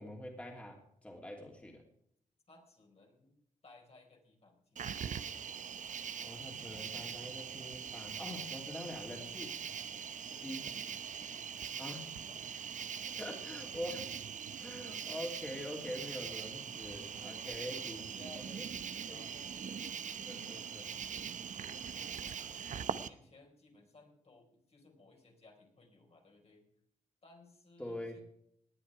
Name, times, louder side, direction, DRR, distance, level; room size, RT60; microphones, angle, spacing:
voice 1, 0.0-1.9 6.2-9.6 10.4-10.7 11.8-12.1 13.2-14.1 14.6-18.0 18.4-18.7 19.1-19.2 20.2-20.9 27.8-28.2, left 1 dB, 10° left, 1 dB, 2.8 m, -44 dB
voice 2, 2.5-5.1 10.3-10.5 11.2-12.6 13.0-13.7 17.6-17.8 18.1-20.7 21.2-26.7 27.2-28.2, left 3 dB, 50° left, 1 dB, 4.2 m, -60 dB
Cricket, 4.8-23.1, right 7 dB, 70° right, 0.8 m, -42 dB
18.5 x 9.8 x 4.8 m, 0.71 s
cardioid pair, 85°, 13 cm